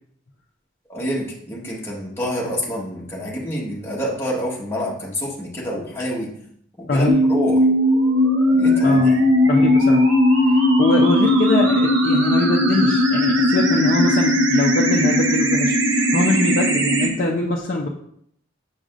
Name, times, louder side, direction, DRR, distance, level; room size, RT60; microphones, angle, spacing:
voice 1, 0.9-6.3 6.8-7.6 8.5-9.3, equal, 15° left, -5 dB, 1.4 m, -27 dB
voice 2, 6.9-7.2 8.8-9.1 9.5-10.0 10.5-17.9, left 2 dB, 45° left, -4 dB, 0.6 m, -23 dB
sound 1, 7.1-17.1, left 1 dB, 70° right, 1.1 m, -17 dB
6.5 x 6.3 x 2.5 m, 0.69 s
head